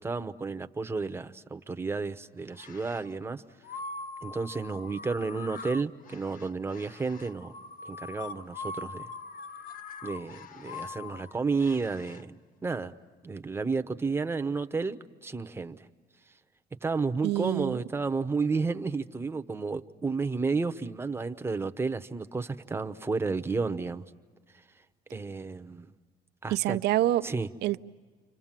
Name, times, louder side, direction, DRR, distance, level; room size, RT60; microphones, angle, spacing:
voice 1, 0.0-3.4 4.2-7.5 7.8-9.1 10.0-12.9 13.2-15.9 16.8-24.0 25.1-25.9 26.4-26.8 27.2-27.5, right 4 dB, 15° right, 0.9 m, -32 dB
sound 1, 2.5-3.1 3.6-12.2, left 4 dB, 55° left, 0.9 m, -43 dB
voice 2, 17.2-17.8 26.5-27.3 27.6-27.8, right 14 dB, 80° right, 0.7 m, -26 dB
29.5 x 25.5 x 7.5 m
cardioid pair, 110°, 17 cm